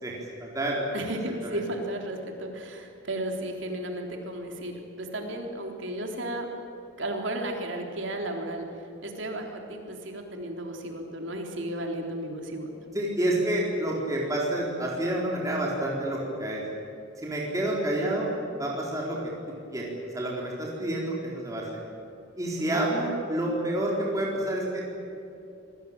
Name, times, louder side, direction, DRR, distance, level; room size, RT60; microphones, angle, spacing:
voice 1, 0.0-0.8 1.4-1.6 12.9-16.6 17.2-18.3 18.6-19.2 19.7-21.8 22.4-24.8, right 1 dB, 15° right, -4 dB, 4.3 m, -29 dB
voice 2, 0.9-6.5 7.0-8.7 9.0-12.7 22.6-22.8, right 1 dB, 70° right, 2 dB, 3.8 m, -34 dB
26.5 x 19.5 x 9.0 m, 2.9 s
head